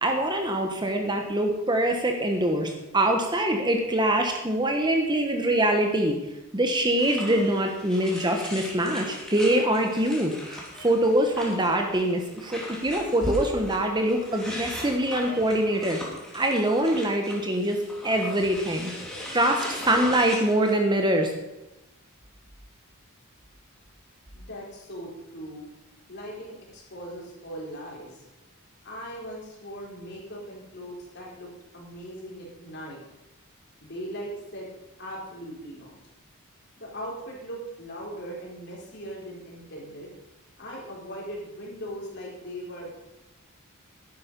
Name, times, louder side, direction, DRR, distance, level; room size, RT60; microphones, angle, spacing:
voice 1, 0.0-6.2 6.5-16.0 16.3-18.9 19.3-21.3, right 1 dB, 20° right, 4 dB, 1.1 m, -24 dB
sound 1, 7.0-20.7, left 1 dB, ahead, 2.7 m, -39 dB
voice 2, 24.3-25.6 26.1-28.3 28.8-33.0 33.8-34.7 35.0-36.0 36.8-40.1 40.6-43.0, equal, 50° left, -3 dB, 4.2 m, -39 dB
12.0 x 10.5 x 5.3 m, 0.99 s
head